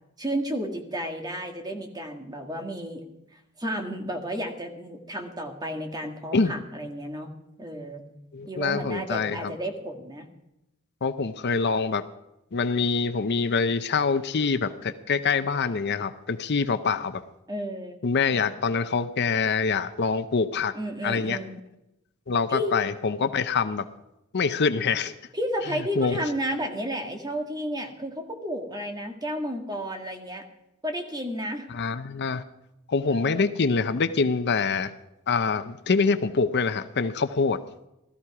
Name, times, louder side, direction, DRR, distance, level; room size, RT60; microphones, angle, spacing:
voice 1, 0.2-3.0 3.6-7.3 7.6-8.0 8.5-10.3 17.5-18.0 20.7-21.6 22.5-22.8 25.3-30.4 30.8-31.7 33.1-33.6, equal, 20° right, 3 dB, 1.8 m, -32 dB
voice 2, 8.3-9.5 11.0-12.0 12.5-17.2 18.0-20.7 21.0-21.4 22.3-23.8 24.3-25.1 26.0-26.2 31.7-32.4 32.9-34.9 35.3-37.6, left 4 dB, 50° left, 11 dB, 0.6 m, -25 dB
17.0 x 13.5 x 4.8 m, 0.90 s
head